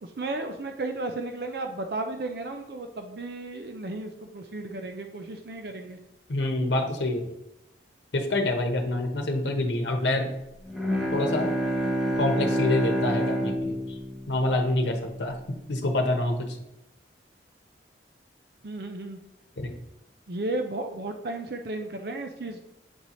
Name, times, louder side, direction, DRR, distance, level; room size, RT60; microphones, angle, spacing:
voice 1, 0.0-6.0 18.6-19.2 20.3-22.6, right 2 dB, 60° right, 5 dB, 0.5 m, -34 dB
voice 2, 6.3-7.3 8.1-10.3 11.1-11.5 12.2-14.0 14.3-15.4 15.7-16.4 19.6-19.7, left 2 dB, 85° left, 3 dB, 1.0 m, -26 dB
Bowed string instrument, 10.7-15.2, equal, ahead, 0.8 m, -28 dB
7.9 x 4.1 x 3.0 m, 0.88 s
head